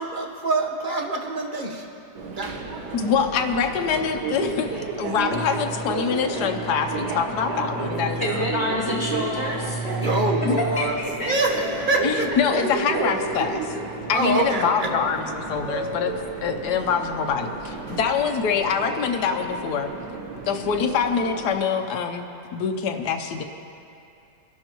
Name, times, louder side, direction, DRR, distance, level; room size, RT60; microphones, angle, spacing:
voice 1, 0.0-1.9 2.3-2.5 8.1-8.5 10.0-10.9 11.3-12.3 13.7-13.8 14.1-14.9 17.9-18.2, right 2 dB, 35° right, 0 dB, 1.2 m, -25 dB
Subway metro underground, 2.2-21.5, right 3 dB, 85° right, 1.8 m, -32 dB
voice 2, 2.9-8.3 10.4-10.6 12.0-13.7 14.1-16.1 16.4-19.9 20.4-23.4, left 6 dB, 75° left, 5 dB, 1.4 m, -25 dB
sound 1, 5.3-11.3, right 3 dB, 60° right, 1.8 m, -33 dB
voice 3, 8.2-10.1 10.6-11.3, left 1 dB, 10° left, -8 dB, 2.9 m, -27 dB
22.5 x 12.0 x 3.0 m, 2.6 s
omnidirectional pair, 1.8 m